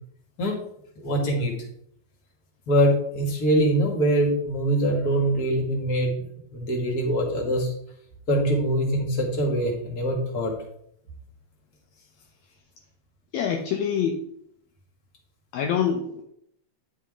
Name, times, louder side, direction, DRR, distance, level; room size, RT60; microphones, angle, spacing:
voice 1, 1.0-1.5 2.7-6.1 6.5-7.7 8.3-10.5, right 1 dB, 35° left, 0 dB, 2.0 m, -23 dB
voice 2, 13.3-14.2 15.5-16.2, left 7 dB, 75° left, 2 dB, 1.9 m, -25 dB
9.9 x 5.7 x 3.7 m, 0.70 s
omnidirectional pair, 3.5 m